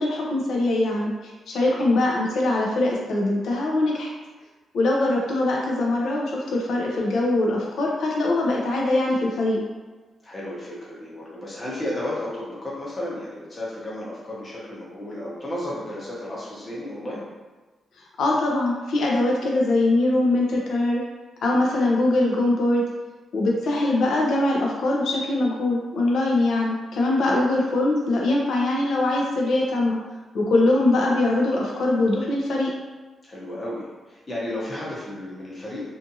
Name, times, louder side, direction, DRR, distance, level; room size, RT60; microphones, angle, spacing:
voice 1, 0.0-4.1 4.7-9.6 18.2-21.0 21.4-22.8 23.3-30.0 30.3-32.7, left 2 dB, 70° left, -2 dB, 0.5 m, -22 dB
voice 2, 10.2-17.2 27.3-27.5 33.2-35.9, left 1 dB, 25° left, -6 dB, 0.8 m, -33 dB
2.5 x 2.5 x 2.7 m, 1.3 s
wide cardioid pair, 145°, 0 cm